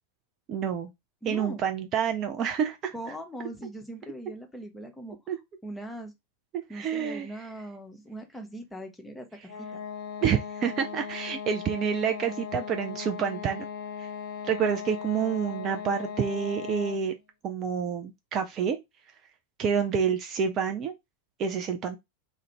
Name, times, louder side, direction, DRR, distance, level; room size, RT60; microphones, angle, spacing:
voice 1, 0.5-0.9 1.3-2.9 5.3-5.4 6.5-7.3 10.2-13.7 14.0-14.1 14.4-17.1 17.4-18.8 19.6-20.9 21.4-22.0, right 7 dB, 30° right, 0.3 m, -28 dB
voice 2, 1.2-1.6 2.9-5.3 5.6-6.1 6.7-9.7, right 1 dB, 5° left, 0.6 m, -40 dB
sound 1, 9.4-17.1, left 7 dB, 45° left, 0.6 m, -38 dB
2.4 x 2.0 x 2.8 m
figure-of-eight pair, 90°, 0 cm